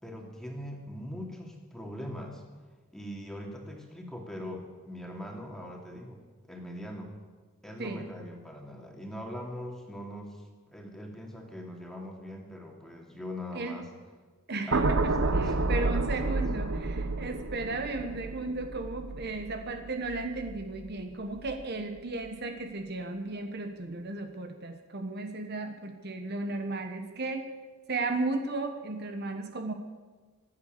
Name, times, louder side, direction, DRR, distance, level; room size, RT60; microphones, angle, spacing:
voice 1, 0.0-2.4 2.9-7.1 7.6-10.4 10.7-13.9 14.7-16.4, left 1 dB, ahead, 0 dB, 2.5 m, -41 dB
voice 2, 14.5-27.5 27.9-29.7, right 2 dB, 50° right, 6 dB, 1.2 m, -35 dB
sound 1, 14.7-21.0 21.4-21.6, right 3 dB, 70° right, 1.0 m, -30 dB
25.0 x 8.5 x 6.7 m, 1.4 s
head